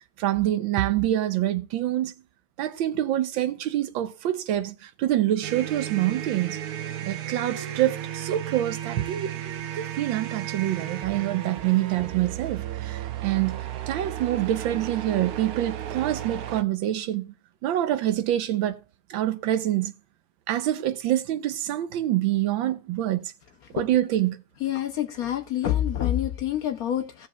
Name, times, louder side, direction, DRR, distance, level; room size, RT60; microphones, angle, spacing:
voice 1, 0.2-2.1 2.6-6.6 7.0-9.3 9.7-13.6 13.9-17.3 17.6-18.8 19.1-19.9 20.5-23.3 23.7-24.4, right 13 dB, 85° right, 1.5 m, -26 dB
sound 1, 5.4-16.6, right 11 dB, 65° right, 1.0 m, -34 dB
voice 2, 24.6-27.3, left 11 dB, 65° left, 0.9 m, -27 dB
17.0 x 7.2 x 2.3 m
omnidirectional pair, 2.1 m